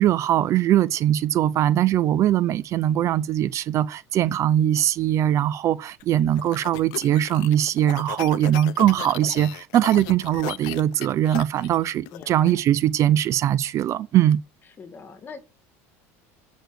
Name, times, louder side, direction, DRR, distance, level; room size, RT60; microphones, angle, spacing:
voice 1, 0.0-14.4, right 11 dB, 40° right, 0.6 m, -21 dB
sound 1, 6.0-12.5, left 19 dB, 65° left, 0.7 m, -37 dB
voice 2, 8.8-9.5 12.1-12.6 14.8-15.5, left 5 dB, 25° left, 2.1 m, -43 dB
8.0 x 6.2 x 6.3 m
supercardioid pair, 130°, 7 cm